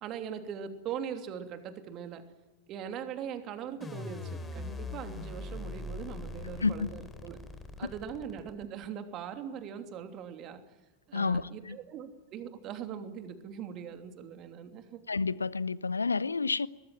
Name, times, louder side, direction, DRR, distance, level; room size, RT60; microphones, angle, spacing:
voice 1, 0.0-2.2 2.7-7.4 7.8-10.6 11.1-15.0, right 8 dB, 35° right, 3.0 m, -41 dB
sound 1, 3.8-8.9, left 3 dB, 15° left, 3.9 m, -41 dB
voice 2, 6.6-6.9 11.1-11.8 15.1-16.7, left 4 dB, 75° left, 0.8 m, -30 dB
23.5 x 21.0 x 9.2 m
figure-of-eight pair, 90°, 0 cm